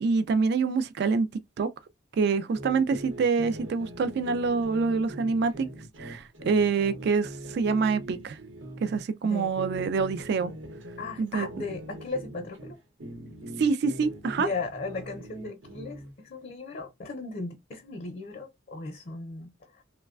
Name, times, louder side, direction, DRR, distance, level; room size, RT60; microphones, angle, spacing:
voice 1, 0.0-1.3 1.6-1.7 2.2-5.7 6.0-8.4 8.8-10.5 11.2-11.5 13.6-14.5, right 4 dB, 60° right, 0.3 m, -26 dB
sound 1, 2.5-9.0 9.4-12.7 13.0-16.1, right 1 dB, 80° right, 0.9 m, -42 dB
voice 2, 9.2-9.5 11.0-12.8 14.4-19.8, left 3 dB, 50° left, 0.5 m, -36 dB
3.1 x 2.1 x 2.3 m
head